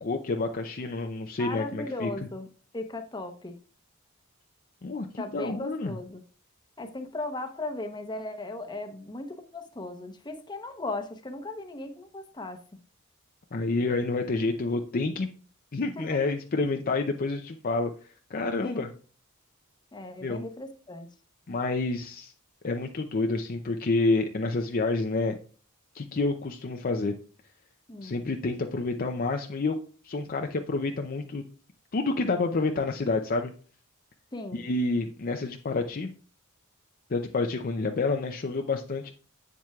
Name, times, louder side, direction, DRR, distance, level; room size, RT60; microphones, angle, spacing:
voice 1, 0.0-2.1 4.8-6.0 13.5-15.3 15.7-17.9 18.3-18.9 20.2-20.4 21.5-22.3 22.6-25.4 25.9-27.1 28.0-29.8 30.0-31.4 31.9-33.5 34.5-36.1 37.1-39.1, left 3 dB, 40° left, 0.5 m, -28 dB
voice 2, 1.4-3.6 5.2-6.2 6.8-12.6 16.0-16.2 18.6-18.9 19.9-21.1 27.9-28.2 34.3-34.6, left 2 dB, 20° left, 0.9 m, -37 dB
7.9 x 7.4 x 2.3 m
head